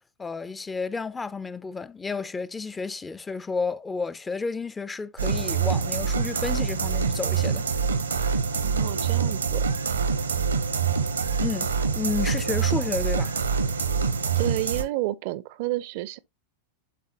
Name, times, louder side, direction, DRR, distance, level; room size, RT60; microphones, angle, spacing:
voice 1, 0.2-7.7 11.4-13.3, left 4 dB, 15° left, 0.4 m, -31 dB
sound 1, 5.2-14.8, right 5 dB, 75° right, 0.8 m, -25 dB
voice 2, 8.6-9.7 14.4-16.2, right 17 dB, 50° right, 0.5 m, -30 dB
11.0 x 3.8 x 2.9 m
figure-of-eight pair, 90°, 0 cm